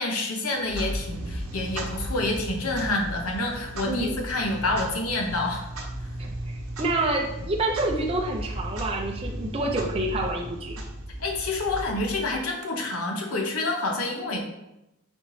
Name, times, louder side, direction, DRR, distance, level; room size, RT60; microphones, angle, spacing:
voice 1, 0.0-5.7 11.2-14.4, left 2 dB, 90° left, 2 dB, 0.9 m, -28 dB
Clock, 0.6-12.5, right 1 dB, 90° right, 0.9 m, -35 dB
voice 2, 3.8-4.2 6.2-10.8, right 2 dB, 25° right, 0 dB, 0.5 m, -28 dB
4.3 x 3.8 x 3.2 m, 0.89 s
head